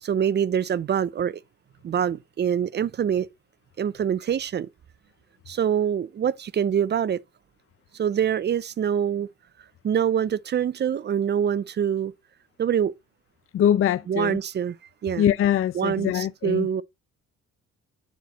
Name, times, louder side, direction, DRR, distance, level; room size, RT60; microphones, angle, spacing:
voice 1, 0.0-1.4 1.8-3.3 3.8-4.7 5.5-7.2 8.0-9.3 9.8-12.1 12.6-12.9 14.1-14.8 15.0-15.2 15.7-16.8, right 8 dB, 35° right, 0.4 m, -25 dB
voice 2, 13.5-14.4 15.2-16.7, left 10 dB, 45° left, 0.5 m, -23 dB
9.2 x 4.3 x 4.0 m
cardioid pair, 90°, 30 cm